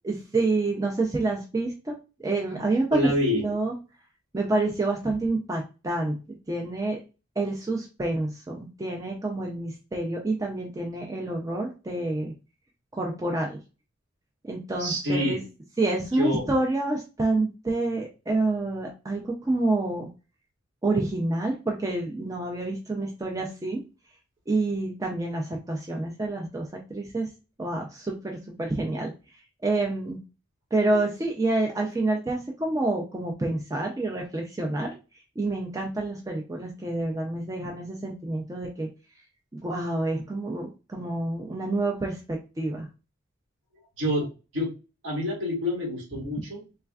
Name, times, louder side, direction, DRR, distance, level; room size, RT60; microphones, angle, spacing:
voice 1, 0.0-3.1 3.4-3.7 4.3-7.0 7.4-12.3 12.9-13.6 14.4-15.4 15.8-20.1 20.8-23.8 24.5-27.3 27.6-29.1 29.6-30.2 30.7-35.0 35.4-38.9 39.6-42.9, right 2 dB, 15° right, 0 dB, 0.3 m, -28 dB
voice 2, 2.9-3.4 14.8-15.4 16.1-16.5 44.0-44.3 44.5-44.7 45.0-46.6, left 1 dB, 65° right, -4 dB, 1.4 m, -27 dB
3.3 x 2.2 x 2.3 m, 0.30 s
head